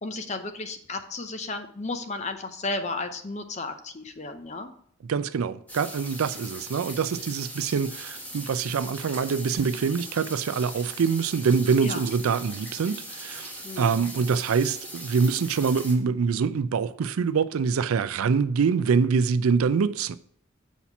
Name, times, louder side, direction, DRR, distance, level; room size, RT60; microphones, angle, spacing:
voice 1, 0.0-4.7 11.8-12.0 13.6-14.0, left 3 dB, 35° left, 0.6 m, -33 dB
voice 2, 5.1-20.2, right 5 dB, 85° right, 0.4 m, -25 dB
sound 1, 5.7-15.9, equal, 5° left, 1.1 m, -40 dB
7.1 x 4.2 x 5.9 m
head